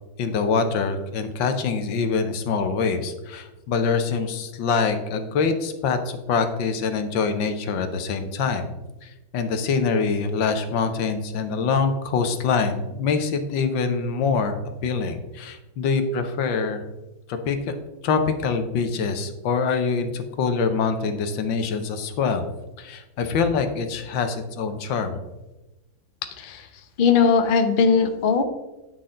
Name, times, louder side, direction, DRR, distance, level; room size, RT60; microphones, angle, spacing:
voice 1, 0.2-8.7 9.0-16.8 17.3-17.8 18.0-22.4 22.8-25.2, left 5 dB, 75° left, 7 dB, 1.6 m, -24 dB
voice 2, 27.0-28.4, left 5 dB, 60° left, 6 dB, 0.5 m, -19 dB
10.0 x 6.1 x 3.8 m, 1.0 s
omnidirectional pair, 2.1 m